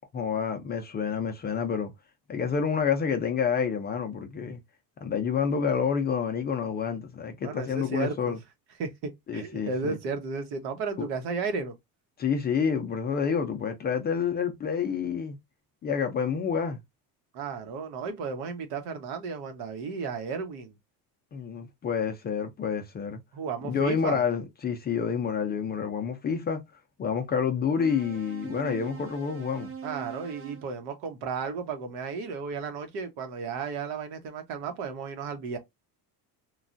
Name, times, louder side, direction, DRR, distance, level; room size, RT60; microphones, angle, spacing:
voice 1, 0.1-1.9 2.3-4.6 5.0-8.4 9.3-10.0 11.0-11.1 12.2-15.4 15.8-16.8 21.3-23.2 23.6-26.6 27.0-29.7, left 6 dB, 25° left, 0.4 m, -28 dB
voice 2, 7.4-8.3 8.8-11.7 17.3-20.7 23.3-24.2 29.8-35.6, right 5 dB, 80° right, 1.0 m, -34 dB
sound 1, 27.8-30.7, right 6 dB, 35° right, 0.5 m, -42 dB
3.1 x 2.2 x 2.5 m
cardioid pair, 145°, 40 cm